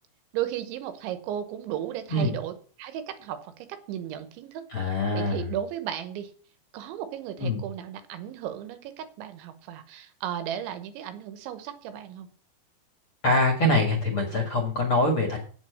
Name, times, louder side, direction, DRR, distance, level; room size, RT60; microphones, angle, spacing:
voice 1, 0.3-4.6 5.1-6.3 6.7-12.3, right 10 dB, 85° right, 10 dB, 3.4 m, -35 dB
voice 2, 4.7-5.5 7.4-7.6 13.2-15.4, left 1 dB, 45° left, 1 dB, 1.8 m, -24 dB
8.6 x 7.8 x 6.7 m, 0.42 s
omnidirectional pair, 5.3 m